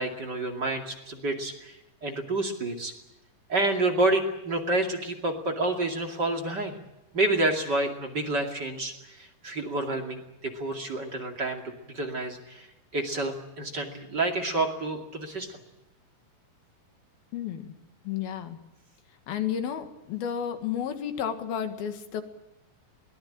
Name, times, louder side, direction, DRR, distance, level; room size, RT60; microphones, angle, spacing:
voice 1, 0.0-2.9 3.5-6.8 7.1-12.7 12.9-15.6, right 2 dB, 30° right, 3 dB, 2.5 m, -29 dB
voice 2, 17.3-17.7 18.1-18.6 19.3-22.2, left 9 dB, 85° left, 8 dB, 3.7 m, -32 dB
23.0 x 19.0 x 8.7 m, 0.95 s
omnidirectional pair, 4.2 m